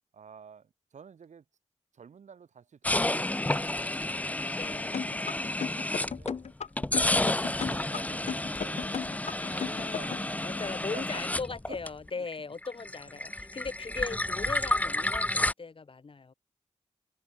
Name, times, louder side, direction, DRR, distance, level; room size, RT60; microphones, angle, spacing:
voice 1, 0.1-1.4 1.9-4.5 4.8-6.5 7.2-9.0 9.6-11.0 11.7-11.8 12.2-12.3 13.9-14.0, right 6 dB, 80° right, 4.3 m, -51 dB
sound 1, 2.8-6.4 6.8-12.3 12.6-15.5, left 1 dB, 10° left, 0.6 m, -31 dB
voice 2, 4.5-5.1 9.4-16.3, left 4 dB, 45° left, 5.0 m, -39 dB
sound 2, 4.9-10.3, left 7 dB, 65° left, 0.7 m, -35 dB
wide cardioid pair, 110°, 12 cm